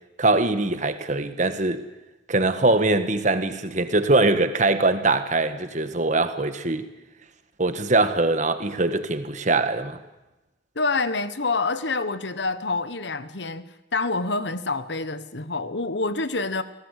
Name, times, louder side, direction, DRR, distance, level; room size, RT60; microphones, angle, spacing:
voice 1, 0.2-1.9 2.3-6.8 7.6-10.0, right 2 dB, 40° right, 1.6 m, -22 dB
voice 2, 10.7-16.6, left 3 dB, 70° left, 1.3 m, -27 dB
26.5 x 17.5 x 8.3 m
head